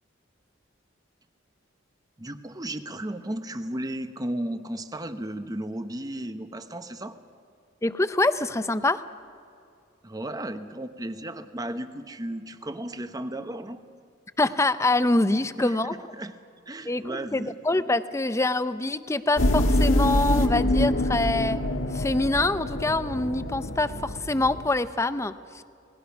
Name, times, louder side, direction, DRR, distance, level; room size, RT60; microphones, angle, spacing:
voice 1, 2.2-7.2 10.0-13.8 15.6-16.3 16.7-17.6, right 1 dB, 20° right, 9 dB, 0.9 m, -34 dB
voice 2, 7.8-9.0 14.4-15.9 16.9-21.6 21.9-25.6, left 2 dB, 15° left, 12 dB, 0.6 m, -25 dB
sound 1, 19.4-24.7, left 1 dB, 85° left, 1.6 m, -25 dB
27.0 x 19.5 x 5.9 m, 2.5 s
head